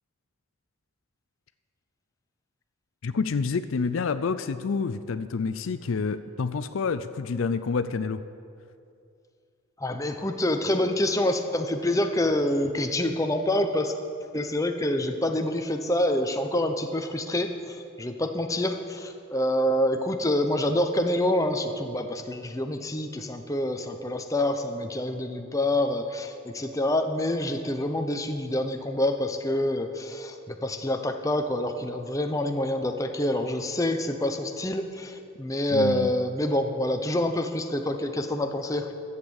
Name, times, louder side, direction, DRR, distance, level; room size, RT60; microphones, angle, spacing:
voice 1, 3.0-8.2 35.7-36.1, left 5 dB, 65° left, 11 dB, 0.4 m, -28 dB
voice 2, 9.8-14.0 14.3-38.9, left 1 dB, 15° left, 5 dB, 0.6 m, -27 dB
13.5 x 8.2 x 7.1 m, 2.5 s
head